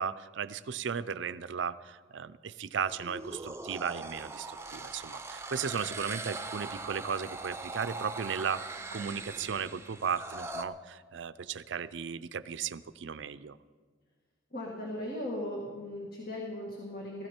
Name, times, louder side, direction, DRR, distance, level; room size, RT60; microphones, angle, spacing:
voice 1, 0.0-13.6, right 6 dB, 75° right, 15 dB, 0.5 m, -36 dB
sound 1, 2.9-10.6, right 3 dB, 15° right, 0.7 m, -41 dB
voice 2, 14.5-17.3, left 1 dB, 55° left, -2 dB, 2.0 m, -38 dB
16.0 x 15.0 x 4.5 m, 1.5 s
head